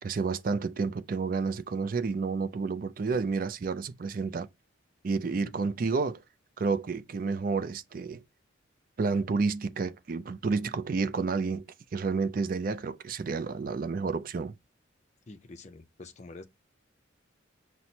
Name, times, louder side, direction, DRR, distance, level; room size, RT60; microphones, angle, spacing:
voice 1, 0.0-4.5 5.0-6.2 6.6-8.2 9.0-11.6 11.9-14.5, right 4 dB, 45° right, 0.4 m, -30 dB
voice 2, 5.3-5.6 15.3-16.4, left 3 dB, 35° left, 0.5 m, -47 dB
5.9 x 2.0 x 2.7 m
head